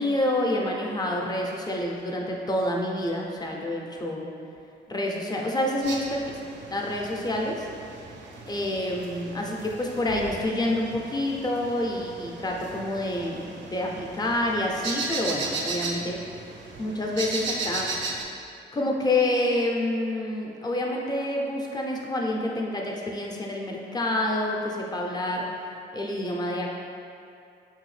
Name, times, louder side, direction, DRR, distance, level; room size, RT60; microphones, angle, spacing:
voice 1, 0.0-4.2 4.9-6.2 6.6-7.5 8.5-16.2 16.8-17.9 18.7-25.5 25.9-26.8, left 1 dB, 20° left, -1 dB, 0.6 m, -28 dB
sound 1, 5.8-18.2, right 3 dB, 75° right, 0.5 m, -36 dB
4.9 x 2.7 x 3.2 m, 2.5 s
cardioid pair, 70°, 19 cm